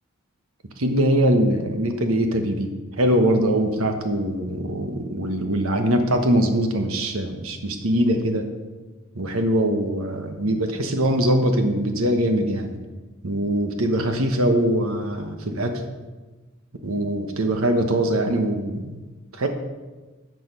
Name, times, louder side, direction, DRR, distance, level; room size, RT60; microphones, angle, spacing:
voice 1, 0.8-8.5 9.1-12.8 13.2-15.8 16.8-19.0 19.3-19.5, right 1 dB, 85° right, 5 dB, 1.2 m, -22 dB
11.0 x 6.8 x 5.3 m, 1.2 s
head